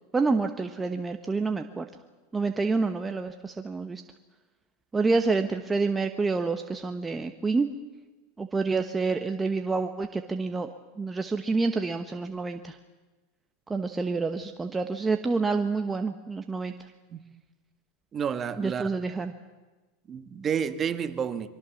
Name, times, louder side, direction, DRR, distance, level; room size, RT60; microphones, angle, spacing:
voice 1, 0.1-1.9 2.3-4.0 4.9-7.7 8.4-10.7 11.0-12.8 13.7-16.7 18.6-19.3, right 4 dB, 15° right, 6 dB, 1.0 m, -28 dB
voice 2, 18.1-18.9 20.1-21.5, right 7 dB, 30° right, 10 dB, 1.5 m, -30 dB
24.0 x 23.5 x 7.2 m, 1.2 s
supercardioid pair, 125°, 0 cm